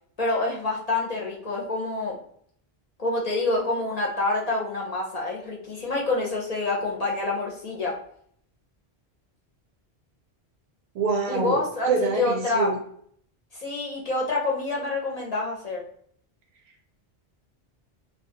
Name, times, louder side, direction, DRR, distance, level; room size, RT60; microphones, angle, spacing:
voice 1, 0.2-2.2 3.0-8.0 11.3-12.7 13.5-15.8, left 2 dB, 45° left, -3 dB, 0.5 m, -27 dB
voice 2, 10.9-12.8, right 4 dB, 80° right, 2 dB, 0.9 m, -25 dB
2.3 x 2.2 x 2.6 m, 0.63 s
omnidirectional pair, 1.1 m